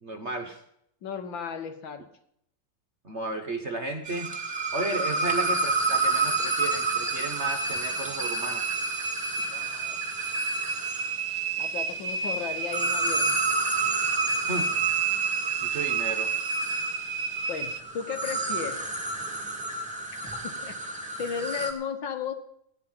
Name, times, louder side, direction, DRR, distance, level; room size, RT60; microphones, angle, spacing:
voice 1, 0.0-0.6 3.0-4.3 4.7-8.7 14.5-14.7 15.6-16.3, right 2 dB, 40° right, 5 dB, 1.1 m, -33 dB
voice 2, 1.0-2.1 9.4-10.0 11.6-13.4 17.5-18.9 20.4-20.9 21.2-22.3, left 7 dB, 65° left, 8 dB, 1.8 m, -35 dB
sound 1, 4.1-11.2 12.6-21.7, right 3 dB, 5° right, 1.8 m, -31 dB
sound 2, 4.1-17.8, right 5 dB, 70° right, 0.7 m, -31 dB
15.0 x 10.0 x 5.8 m, 0.71 s
omnidirectional pair, 2.3 m